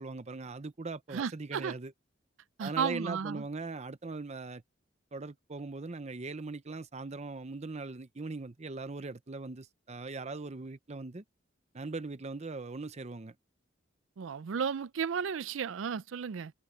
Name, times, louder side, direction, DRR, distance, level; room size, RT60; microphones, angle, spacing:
voice 1, 0.0-1.9 2.6-4.6 5.1-11.2 11.7-13.3, right 3 dB, 35° right, 0.7 m, -40 dB
voice 2, 1.1-1.8 2.6-3.4 14.2-16.5, right 6 dB, 70° right, 0.4 m, -34 dB
open air
head